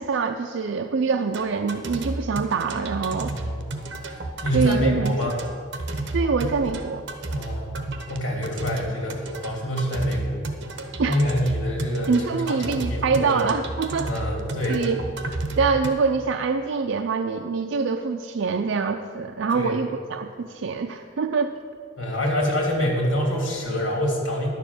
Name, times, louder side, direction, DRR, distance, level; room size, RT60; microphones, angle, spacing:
voice 1, 0.0-3.3 4.5-5.3 6.1-7.0 11.0-11.2 12.1-14.2 14.7-15.0 15.6-21.5, right 4 dB, 85° right, 5 dB, 0.5 m, -25 dB
sound 1, 1.3-15.9, right 2 dB, 65° right, 1.0 m, -32 dB
voice 2, 3.2-3.7 4.4-5.4 7.3-7.7 8.1-10.4 11.1-13.4 14.0-14.8 15.5-15.6 19.5-19.7 22.0-24.5, equal, 85° left, -1 dB, 3.0 m, -26 dB
10.5 x 7.2 x 7.0 m, 2.2 s
head